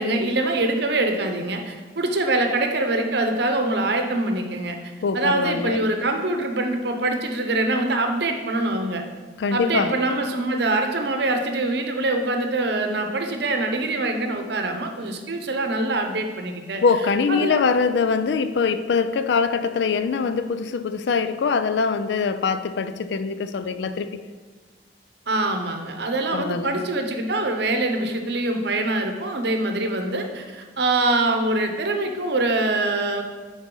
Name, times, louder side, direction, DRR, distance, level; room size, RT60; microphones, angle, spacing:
voice 1, 0.0-4.8 5.1-9.0 9.5-16.8 17.3-17.6 25.3-33.2, right 2 dB, 60° right, 0.8 m, -24 dB
voice 2, 5.0-5.8 9.4-10.0 16.8-24.2 26.3-26.9, left 5 dB, 65° left, 0.4 m, -23 dB
9.6 x 4.1 x 3.8 m
head